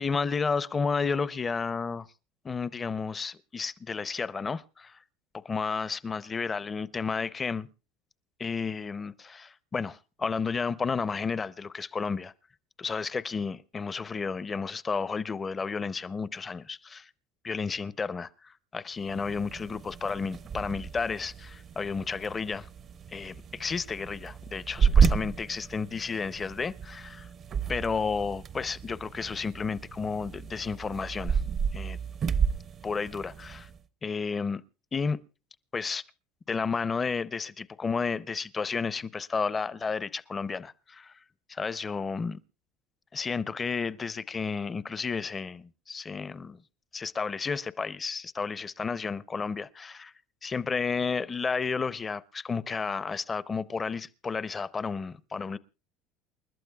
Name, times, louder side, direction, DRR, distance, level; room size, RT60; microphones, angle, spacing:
voice 1, 0.0-2.1 2.4-5.0 5.3-7.7 8.4-12.3 12.8-17.1 17.4-22.7 23.1-27.3 27.7-31.4 31.7-32.0 32.8-33.7 34.0-34.6 34.9-35.2 35.7-36.0 36.5-41.2 41.5-42.4 43.1-46.6 46.9-50.1 50.4-55.6, left 5 dB, 25° left, 0.6 m, -32 dB
sound 1, 19.0-33.8, right 6 dB, 40° right, 0.6 m, -31 dB
29.0 x 11.5 x 2.3 m
supercardioid pair, 115°, 0 cm